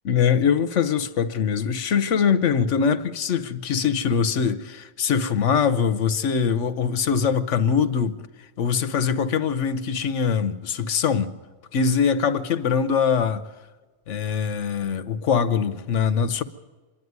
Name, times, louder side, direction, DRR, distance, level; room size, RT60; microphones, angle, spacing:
voice 1, 0.0-8.3 8.6-11.3 11.7-13.4 14.1-16.4, left 6 dB, 85° left, 1.2 m, -22 dB
26.5 x 11.0 x 9.5 m
omnidirectional pair, 1.2 m